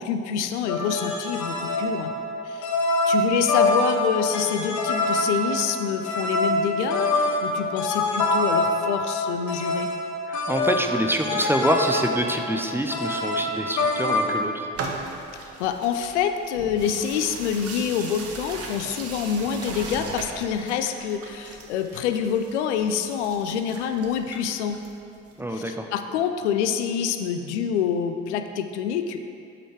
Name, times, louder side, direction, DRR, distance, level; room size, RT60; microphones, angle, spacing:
voice 1, 0.0-2.1 2.4-2.7 3.1-9.9 15.6-24.8 25.5-29.2, left 7 dB, 75° left, 7 dB, 0.5 m, -26 dB
sound 1, 0.7-14.3, left 2 dB, 55° left, 0.9 m, -25 dB
voice 2, 10.3-14.7 25.4-25.9, right 1 dB, 5° right, 4 dB, 0.6 m, -26 dB
sound 2, 14.7-25.3, right 3 dB, 40° right, 1.0 m, -38 dB
8.2 x 5.3 x 4.5 m, 2.6 s
figure-of-eight pair, 40°, 35 cm